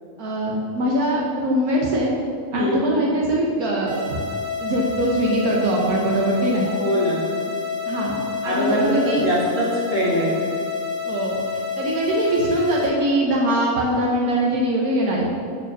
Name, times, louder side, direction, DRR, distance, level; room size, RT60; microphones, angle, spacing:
voice 1, 0.2-2.1 2.5-4.2 4.6-6.7 7.9-9.3 11.1-11.3 11.8-15.3, right 1 dB, 85° right, -3 dB, 1.5 m, -22 dB
voice 2, 2.5-2.8 6.8-7.2 8.4-10.4, equal, 45° right, -7 dB, 2.5 m, -23 dB
sound 1, 3.9-12.9, left 5 dB, 25° right, 1.9 m, -28 dB
8.5 x 4.7 x 5.9 m, 2.4 s
omnidirectional pair, 1.5 m